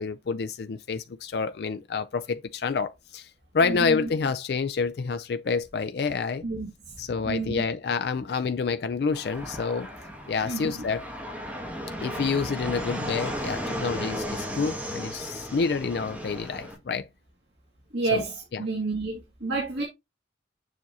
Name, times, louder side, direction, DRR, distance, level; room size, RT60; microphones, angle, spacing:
voice 1, 0.0-6.4 7.0-9.9 10.3-11.1 12.0-17.1 18.1-18.2 18.5-18.6, left 5 dB, 60° left, 0.4 m, -28 dB
voice 2, 6.4-7.0 7.3-7.6 10.4-10.8 17.9-19.8, right 3 dB, 70° right, 2.1 m, -30 dB
Fixed-wing aircraft airplane, 9.1-16.7, equal, 10° right, 1.8 m, -35 dB
7.1 x 6.0 x 2.7 m
head